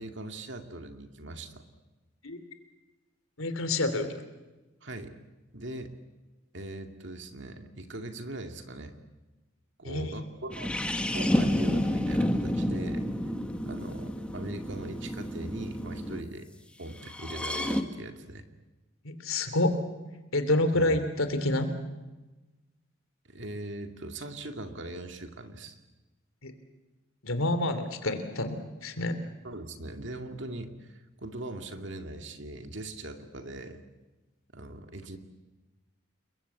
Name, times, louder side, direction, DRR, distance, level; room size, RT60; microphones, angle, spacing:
voice 1, 0.0-1.6 4.8-5.1 5.5-5.9 6.5-8.9 9.8-10.7 11.1-13.0 13.6-16.5 16.8-18.4 20.7-21.0 23.3-25.8 29.4-33.8 34.5-35.2, right 1 dB, 60° right, 6 dB, 2.3 m, -40 dB
voice 2, 3.4-4.2 9.8-10.2 19.0-19.8 20.3-21.7 26.4-26.5 27.2-29.2, left 2 dB, 85° left, 9 dB, 3.1 m, -28 dB
sound 1, 10.5-16.2 17.0-17.8, left 1 dB, 5° left, 1.5 m, -30 dB
29.5 x 21.5 x 8.4 m, 1.1 s
head